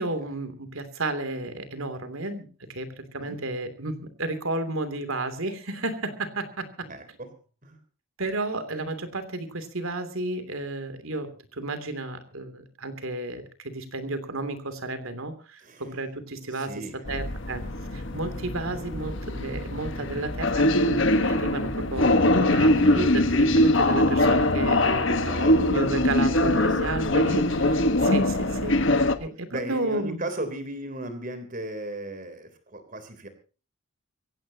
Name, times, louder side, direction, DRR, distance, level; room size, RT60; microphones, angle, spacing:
voice 1, 0.0-6.9 8.2-16.7 17.1-17.6 17.9-25.3 25.6-30.2, right 2 dB, 70° right, 10 dB, 3.0 m, -32 dB
voice 2, 6.8-7.3 7.6-7.8 15.6-15.8 16.5-17.0 25.1-25.7 26.3-26.8 28.5-28.8 29.5-33.3, right 1 dB, 40° right, 9 dB, 3.5 m, -36 dB
sound 1, 16.2-21.4, left 1 dB, 20° right, 5.6 m, -47 dB
sound 2, 17.1-29.1, left 1 dB, 55° left, 1.4 m, -22 dB
24.0 x 16.5 x 2.9 m, 0.36 s
head